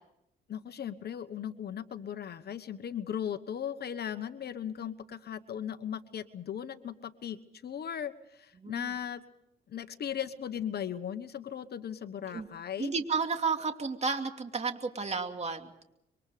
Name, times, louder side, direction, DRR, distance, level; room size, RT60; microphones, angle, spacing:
voice 1, 0.5-7.4 7.6-9.2 9.7-12.9, left 9 dB, 55° left, 11 dB, 1.2 m, -37 dB
voice 2, 8.6-8.9 12.3-12.5 12.8-15.7, right 4 dB, 35° right, 5 dB, 2.7 m, -32 dB
26.0 x 24.0 x 5.1 m, 0.80 s
cardioid pair, 90°, 20 cm